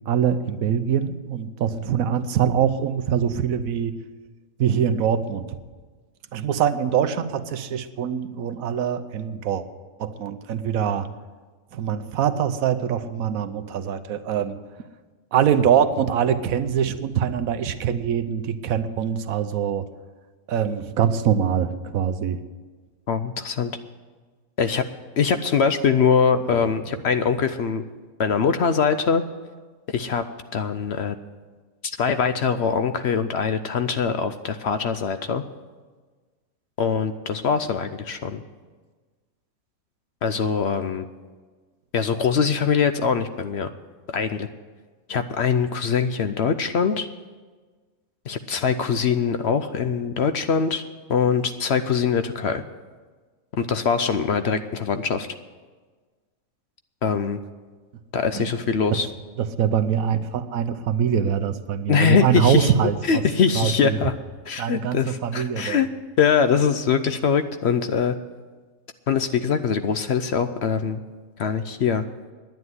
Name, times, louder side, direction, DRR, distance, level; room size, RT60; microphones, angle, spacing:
voice 1, 0.1-3.9 4.6-5.5 6.3-9.6 10.0-11.1 11.7-14.6 15.3-19.8 20.5-22.4 58.3-58.5 58.9-59.0 59.4-63.2 63.5-64.0 64.6-65.8, right 8 dB, 75° right, 11 dB, 1.2 m, -23 dB
voice 2, 23.1-23.7 24.6-24.8 25.2-27.8 28.2-29.2 29.9-30.2 30.5-31.2 32.0-35.4 36.8-38.4 40.2-41.1 41.9-43.7 44.1-44.5 45.1-47.1 48.3-50.8 51.1-52.6 53.6-55.3 57.0-57.4 58.1-59.1 61.9-62.7 63.1-64.1 64.5-65.9 66.2-68.2 69.1-71.0 71.4-72.0, left 6 dB, 60° left, 10 dB, 0.8 m, -22 dB
11.0 x 9.3 x 9.6 m, 1.4 s
omnidirectional pair, 1.5 m